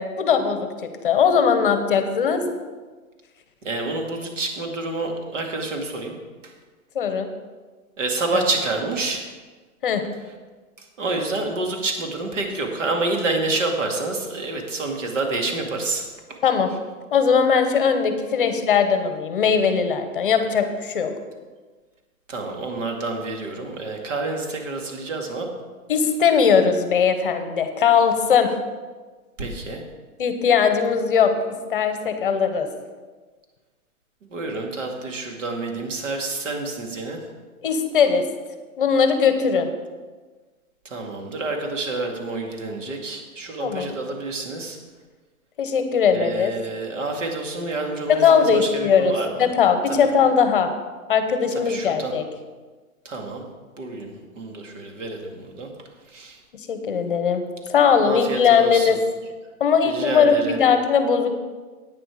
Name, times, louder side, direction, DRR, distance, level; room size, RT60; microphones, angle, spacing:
voice 1, 0.0-2.5 6.9-7.3 8.3-8.4 9.8-10.0 16.4-16.7 17.1-21.1 25.9-28.5 30.2-31.3 31.7-32.7 37.6-38.2 38.8-39.7 43.6-44.0 45.6-46.5 48.1-49.1 49.4-50.7 51.1-52.2 56.7-57.4 57.7-59.0 59.6-61.3, left 6 dB, 35° left, 8 dB, 1.0 m, -19 dB
voice 2, 3.6-6.2 6.4-6.5 8.0-9.3 10.8-16.4 22.3-25.5 29.4-29.8 34.2-37.2 40.8-44.8 46.1-49.4 51.5-52.1 53.0-53.4 53.8-55.7 56.1-56.4 58.0-59.0 59.8-60.6, right 3 dB, 55° right, 2 dB, 2.3 m, -28 dB
10.5 x 9.1 x 4.8 m, 1.4 s
hypercardioid pair, 175°, 44 cm